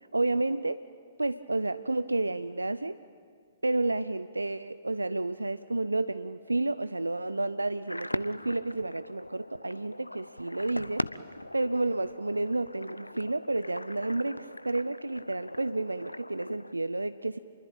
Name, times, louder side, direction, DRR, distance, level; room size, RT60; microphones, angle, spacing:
voice 1, 0.1-0.8 1.2-3.0 3.6-11.0 11.5-17.4, right 2 dB, 85° right, 14 dB, 0.6 m, -30 dB
sound 1, 7.9-16.7, left 1 dB, 90° left, 0.7 m, -41 dB
29.0 x 22.5 x 9.0 m, 2.1 s
figure-of-eight pair, 120°, 0 cm